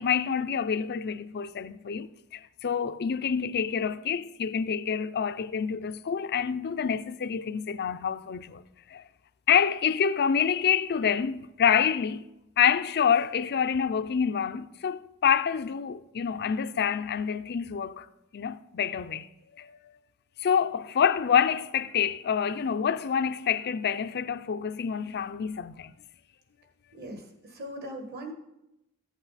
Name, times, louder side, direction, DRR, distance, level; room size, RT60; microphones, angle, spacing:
voice 1, 0.0-2.1 2.3-8.6 8.9-9.0 9.5-12.2 12.6-18.1 18.3-19.3 19.5-19.9 20.4-25.9, left 7 dB, 50° left, 0.4 m, -27 dB
voice 2, 26.9-28.3, right 1 dB, 45° right, 1.5 m, -40 dB
14.5 x 8.1 x 4.1 m
head